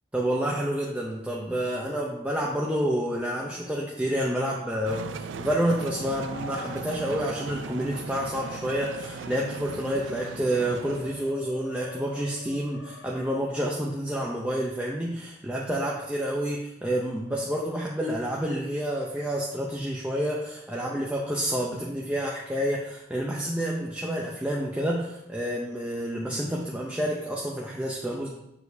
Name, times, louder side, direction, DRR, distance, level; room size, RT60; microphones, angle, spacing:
voice 1, 0.1-28.3, equal, 10° right, -3 dB, 0.6 m, -29 dB
sound 1, 3.0-13.3, left 3 dB, 65° left, 1.2 m, -46 dB
sound 2, 4.8-11.3, right 5 dB, 85° right, 0.4 m, -38 dB
6.9 x 6.5 x 2.7 m, 0.84 s
head